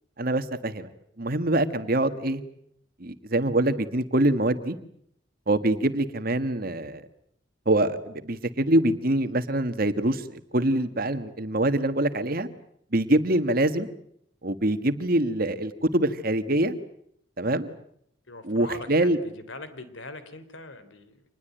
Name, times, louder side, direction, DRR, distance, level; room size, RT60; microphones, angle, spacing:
voice 1, 0.2-0.9 1.2-2.4 3.0-4.8 5.5-7.0 7.6-12.5 12.9-13.9 14.4-16.7 17.4-17.7 18.4-19.2, right 1 dB, 50° right, 10 dB, 1.7 m, -24 dB
voice 2, 18.3-21.2, left 2 dB, 75° left, 12 dB, 3.3 m, -41 dB
26.5 x 20.5 x 9.2 m, 0.71 s
head